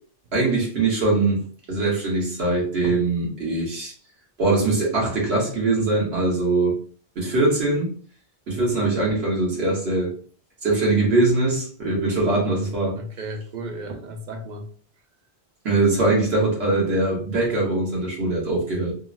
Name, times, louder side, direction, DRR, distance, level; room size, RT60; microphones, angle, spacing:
voice 1, 0.3-3.9 4.4-6.8 7.1-7.9 8.5-10.1 10.6-13.0 15.6-18.9, right 2 dB, 75° right, -3 dB, 1.5 m, -22 dB
voice 2, 12.6-14.7, right 1 dB, 55° right, 4 dB, 0.6 m, -34 dB
3.6 x 2.1 x 2.5 m, 0.43 s
omnidirectional pair, 1.1 m